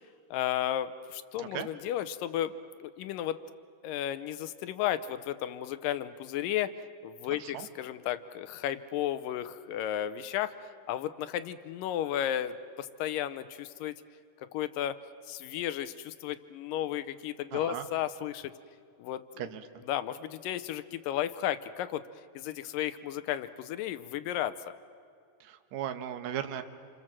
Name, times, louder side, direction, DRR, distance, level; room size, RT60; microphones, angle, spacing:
voice 1, 0.3-2.5 2.8-3.4 3.8-6.7 7.0-10.5 10.9-14.0 14.5-15.0 15.3-18.6 19.0-19.2 19.8-22.0 22.4-24.6, left 11 dB, 80° left, 13 dB, 2.4 m, -33 dB
voice 2, 17.5-17.9 19.4-19.6 25.4-26.6, right 10 dB, 65° right, 7 dB, 2.3 m, -37 dB
27.5 x 27.5 x 7.5 m, 2.3 s
omnidirectional pair, 3.9 m